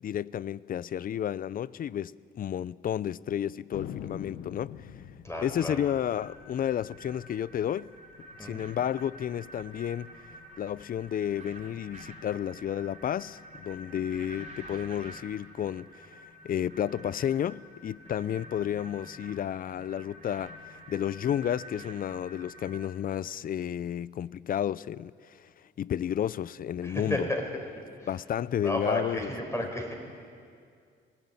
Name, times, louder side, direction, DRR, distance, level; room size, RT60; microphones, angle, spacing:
voice 1, 0.0-4.9 5.4-7.9 8.4-10.1 10.6-25.5 25.8-27.3 28.1-29.3, left 10 dB, 45° left, 0.4 m, -32 dB
Thunder, 3.7-8.6 8.8-8.9 9.1-9.7 10.2-11.3, left 9 dB, 80° left, 1.1 m, -45 dB
voice 2, 5.2-5.8 8.4-8.7 26.8-27.6 28.0-28.1 28.6-30.0, left 1 dB, 15° left, 4.7 m, -32 dB
sound 1, 5.8-22.8, right 1 dB, 35° right, 3.4 m, -49 dB
19.5 x 16.0 x 9.7 m
cardioid pair, 90°, 20 cm